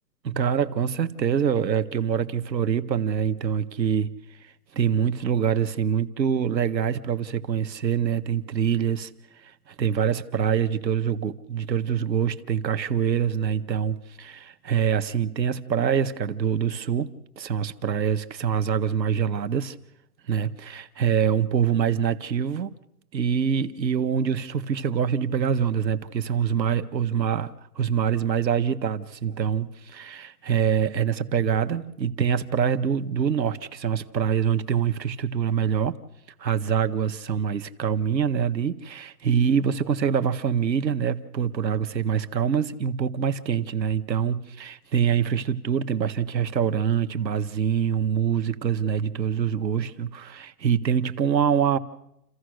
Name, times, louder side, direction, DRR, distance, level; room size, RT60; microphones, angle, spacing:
voice 1, 0.2-4.1 4.7-9.1 9.4-17.1 17.4-19.8 20.3-22.7 23.1-35.9 36.4-51.8, right 7 dB, 90° right, 1.7 m, -25 dB
29.5 x 14.5 x 6.5 m
hypercardioid pair, 170°, 49 cm